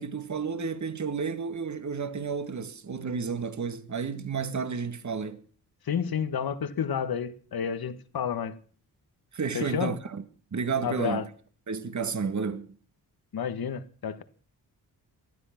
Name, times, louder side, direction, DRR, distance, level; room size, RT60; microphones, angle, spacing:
voice 1, 0.0-5.4 9.3-10.2 10.5-11.3 11.7-12.8, right 5 dB, 45° right, 2.0 m, -31 dB
voice 2, 5.9-8.6 9.5-10.0 10.8-11.3 13.3-14.2, left 7 dB, 60° left, 1.7 m, -30 dB
19.0 x 12.5 x 6.0 m
cardioid pair, 75°, 40 cm